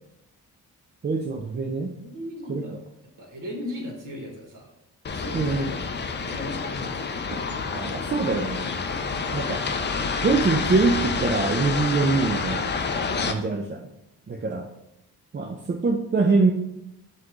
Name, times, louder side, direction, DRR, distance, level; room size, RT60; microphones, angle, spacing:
voice 1, 1.0-1.9 2.5-2.6 5.3-5.7 7.7-8.6 9.3-9.6 10.2-12.7 13.3-13.9 14.3-14.7 15.3-16.5, right 3 dB, 25° right, 1 dB, 0.5 m, -24 dB
voice 2, 1.8-2.8 3.2-4.7 5.1-7.0, left 1 dB, 50° right, 0 dB, 1.5 m, -38 dB
sound 1, 5.0-13.3, left 4 dB, 30° left, 0.4 m, -28 dB
5.6 x 2.5 x 3.1 m, 0.85 s
supercardioid pair, 60°, 40 cm